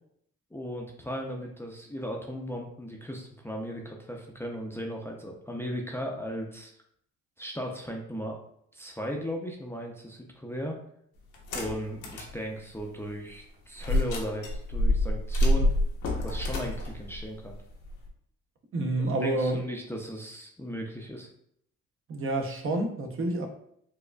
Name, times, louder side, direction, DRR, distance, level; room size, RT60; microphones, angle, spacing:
voice 1, 0.5-6.7 7.4-8.4 8.7-10.8 11.5-15.7 16.2-17.6 19.2-21.3, equal, 10° left, 0 dB, 0.5 m, -36 dB
sound 1, 11.3-12.3 12.8-12.9 13.8-18.1, left 1 dB, 80° left, 0.9 m, -27 dB
voice 2, 18.7-19.6 22.1-23.5, right 2 dB, 45° right, 2 dB, 0.7 m, -28 dB
4.5 x 2.3 x 2.2 m, 0.69 s
cardioid pair, 90°, 30 cm